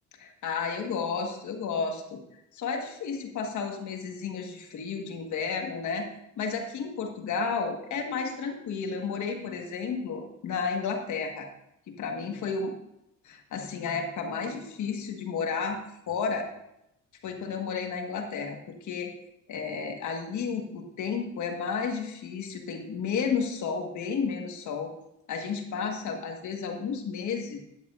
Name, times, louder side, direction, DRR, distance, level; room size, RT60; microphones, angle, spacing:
voice 1, 0.2-2.2 2.5-6.1 6.4-11.5 11.9-12.7 13.2-15.8 16.1-16.5 17.2-19.1 19.5-24.9 25.3-27.6, left 5 dB, 75° left, 3 dB, 1.6 m, -32 dB
11.5 x 10.5 x 2.5 m, 0.82 s
cardioid pair, 90°, 30 cm